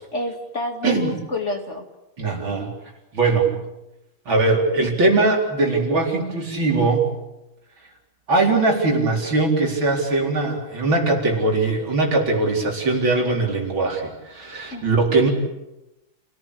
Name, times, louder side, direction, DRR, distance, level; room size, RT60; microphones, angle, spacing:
voice 1, 0.1-1.9 14.7-15.1, left 1 dB, 35° left, 3 dB, 2.6 m, -28 dB
voice 2, 2.2-2.7 3.1-3.5 4.3-7.1 8.3-15.3, right 3 dB, 70° right, 0 dB, 5.0 m, -20 dB
29.0 x 18.0 x 8.5 m, 0.95 s
omnidirectional pair, 2.3 m